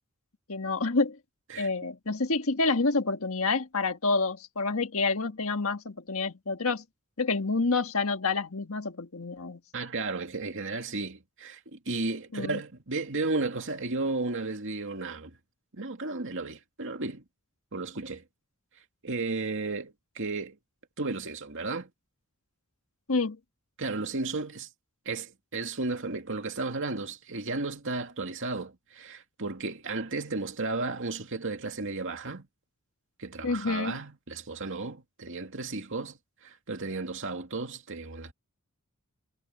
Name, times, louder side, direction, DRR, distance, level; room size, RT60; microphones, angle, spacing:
voice 1, 0.5-1.2 1.6-6.8 7.2-9.6 12.3-12.6 23.1-23.4 33.4-34.0, left 3 dB, 65° left, 1.7 m, -28 dB
voice 2, 9.7-15.3 15.8-17.2 17.7-18.2 19.0-20.6 21.0-21.9 23.8-24.7 25.1-32.4 33.2-38.3, right 3 dB, 60° right, 2.4 m, -34 dB
head